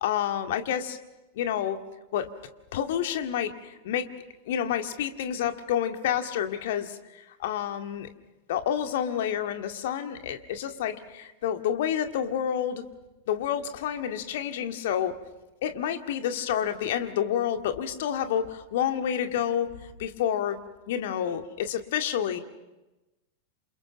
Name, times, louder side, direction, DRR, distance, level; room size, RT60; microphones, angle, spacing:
voice 1, 0.0-1.0 1.4-1.8 2.1-2.3 2.7-4.1 4.5-8.1 8.5-12.8 13.3-15.1 15.6-19.7 20.0-20.6 20.9-22.4, left 9 dB, 55° left, 6 dB, 2.0 m, -29 dB
28.0 x 27.5 x 6.2 m, 1.1 s
figure-of-eight pair, 90°, 0 cm